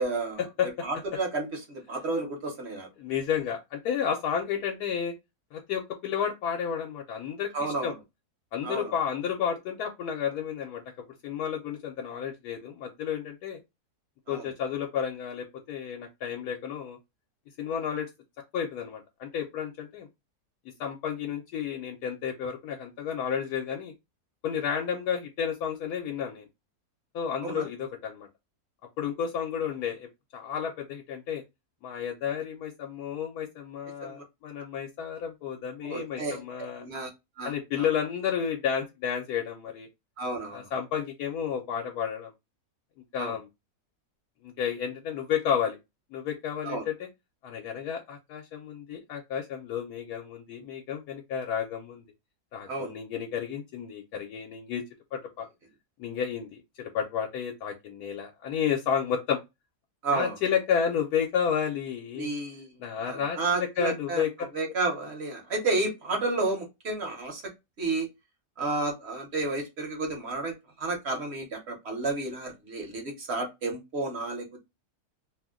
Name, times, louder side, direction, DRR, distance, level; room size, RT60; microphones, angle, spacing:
voice 1, 0.0-0.4 0.8-2.9 7.5-7.9 8.6-8.9 14.3-14.5 27.4-27.7 34.0-34.2 35.8-36.4 36.8-37.1 37.4-37.5 37.8-37.9 40.2-40.7 43.2-43.3 46.6-46.8 52.7-52.9 60.0-60.4 62.2-62.7 63.0-64.2 64.5-67.4 67.8-68.1 68.6-74.6, right 3 dB, 50° right, 0.9 m, -31 dB
voice 2, 3.0-5.1 5.5-7.9 8.5-10.8 11.2-13.6 14.3-17.0 17.6-18.1 18.5-20.1 20.8-23.9 24.4-26.5 27.1-28.3 29.0-31.4 31.8-36.8 37.4-39.9 40.5-42.3 43.1-43.5 44.4-45.8 46.1-47.1 47.4-52.0 52.5-54.8 55.1-55.5 56.0-59.4 60.1-62.3 62.8-64.3 64.7-64.8, left 8 dB, 80° left, 1.1 m, -31 dB
2.7 x 2.1 x 3.5 m
omnidirectional pair, 1.6 m